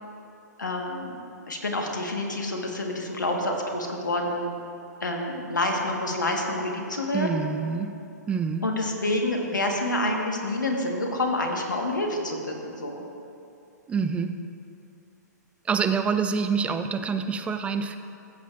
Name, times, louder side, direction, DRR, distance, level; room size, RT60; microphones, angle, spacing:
voice 1, 0.6-1.2 1.5-4.5 5.0-7.4 8.6-13.0, left 1 dB, 85° left, 1 dB, 1.4 m, -28 dB
voice 2, 7.1-8.0 8.3-8.7 13.9-14.4 15.7-18.0, right 5 dB, 10° right, 8 dB, 0.4 m, -26 dB
14.5 x 8.3 x 2.5 m, 2.6 s
hypercardioid pair, 125°, 10 cm